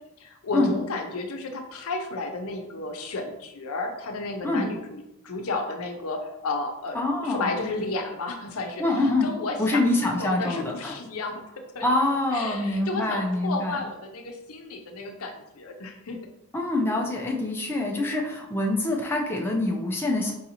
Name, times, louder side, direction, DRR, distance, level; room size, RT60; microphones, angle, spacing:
voice 1, 0.2-5.0 5.2-11.4 11.7-11.9 12.3-16.2, left 3 dB, 90° left, 4 dB, 0.6 m, -32 dB
voice 2, 6.9-7.5 8.8-9.3 9.6-11.0 11.8-13.8 16.5-20.3, left 2 dB, 10° left, -1 dB, 0.5 m, -25 dB
4.7 x 2.7 x 2.8 m, 0.88 s
head